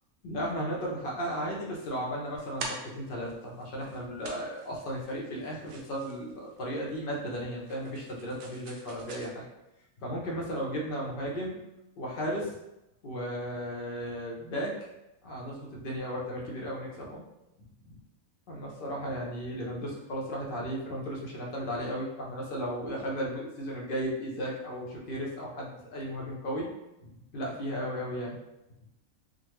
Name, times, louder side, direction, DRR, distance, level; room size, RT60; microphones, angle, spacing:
voice 1, 0.2-9.4 10.0-11.6 12.0-12.5 13.0-14.7 15.2-17.2 17.8-18.0 18.5-26.7 27.3-28.4, equal, 50° left, -3 dB, 0.7 m, -35 dB
sound 1, 1.9-9.3, right 3 dB, 80° right, 1.0 m, -45 dB
3.7 x 2.1 x 2.9 m, 0.91 s
omnidirectional pair, 1.5 m